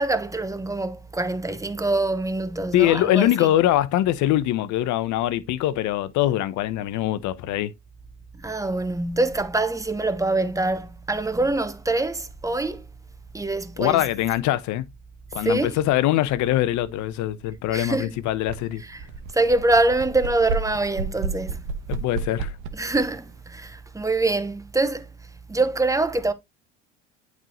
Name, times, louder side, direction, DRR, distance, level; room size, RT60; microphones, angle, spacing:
voice 1, 0.0-3.5 8.3-12.9 13.3-14.0 15.4-15.8 17.7-18.2 18.7-19.0 19.3-21.6 22.7-25.1 25.5-26.3, right 2 dB, 10° right, 0.8 m, -24 dB
voice 2, 2.7-7.7 13.8-14.9 15.3-18.8 21.9-22.5, left 13 dB, 55° left, 0.8 m, -23 dB
sound 1, 18.5-18.6 18.9-23.1, right 5 dB, 55° right, 1.1 m, -31 dB
9.0 x 4.7 x 2.9 m
hypercardioid pair, 75°, 35 cm